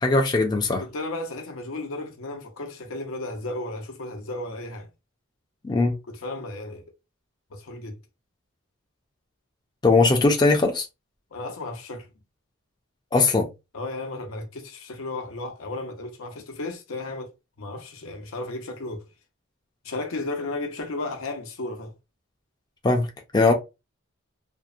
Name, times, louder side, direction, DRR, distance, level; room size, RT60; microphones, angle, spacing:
voice 1, 0.0-0.8 5.6-5.9 9.8-10.9 13.1-13.5 22.8-23.1 23.3-23.5, left 3 dB, 20° left, 0.4 m, -19 dB
voice 2, 0.8-4.9 6.1-6.9 7.5-8.0 11.3-12.1 13.7-17.3 17.6-19.0 19.8-21.9, left 2 dB, 75° left, 0.6 m, -34 dB
2.7 x 2.0 x 2.3 m
head